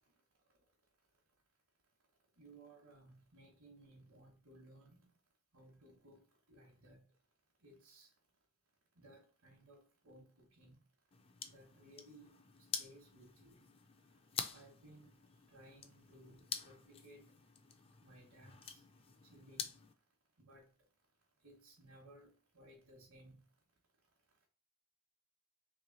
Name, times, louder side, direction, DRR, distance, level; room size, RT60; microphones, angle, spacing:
voice 1, 2.4-5.1 5.5-6.2 6.5-7.0 7.6-8.1 9.0-10.8 11.5-12.3 12.8-13.6 14.5-15.1 15.5-17.3 18.0-18.8 19.3-19.7 20.4-20.6 21.4-22.3 22.5-23.4, right 1 dB, 75° right, 1.1 m, -60 dB
sound 1, 11.1-19.9, left 6 dB, 25° left, 0.3 m, -48 dB
3.1 x 3.0 x 3.9 m
head